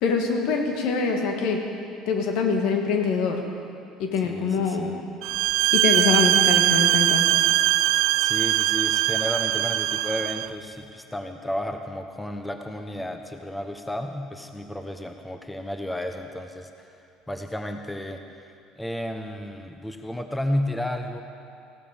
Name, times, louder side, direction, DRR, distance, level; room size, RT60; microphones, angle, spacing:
voice 1, 0.0-1.6 2.1-3.4 4.0-4.9 5.7-7.3, left 5 dB, 70° left, 3 dB, 1.8 m, -24 dB
voice 2, 4.2-5.0 8.2-16.9 17.3-21.2, left 1 dB, 10° left, 5 dB, 1.1 m, -32 dB
sound 1, 5.2-10.5, right 14 dB, 70° right, 0.4 m, -21 dB
16.0 x 12.5 x 5.2 m, 2.6 s
hypercardioid pair, 75°, 0 cm